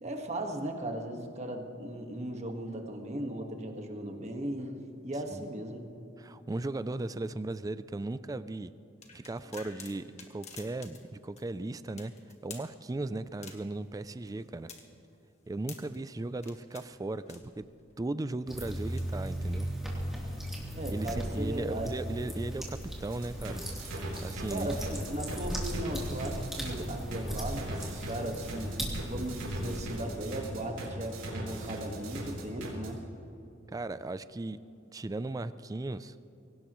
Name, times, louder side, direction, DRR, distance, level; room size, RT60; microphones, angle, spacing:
voice 1, 0.0-4.7 5.0-5.9 20.7-21.9 24.5-28.8 29.1-33.0, right 1 dB, 35° right, 3 dB, 1.6 m, -37 dB
voice 2, 6.2-8.7 9.1-12.1 12.4-14.7 15.5-17.7 18.0-19.7 20.9-23.6 24.2-24.8 31.5-31.7 33.7-34.6 34.9-36.2, right 2 dB, 20° right, 14 dB, 0.3 m, -37 dB
sound 1, 9.0-11.1 11.4-11.5 12.0-12.7 13.4-13.8 14.3-16.0 16.4-16.9 17.3-17.8 18.8-19.0, left 5 dB, 35° left, 1.7 m, -49 dB
sound 2, 18.5-29.8, right 1 dB, ahead, 3.2 m, -37 dB
sound 3, 23.1-32.9, right 1 dB, 85° right, 3.7 m, -39 dB
23.5 x 18.0 x 3.1 m, 2.8 s
head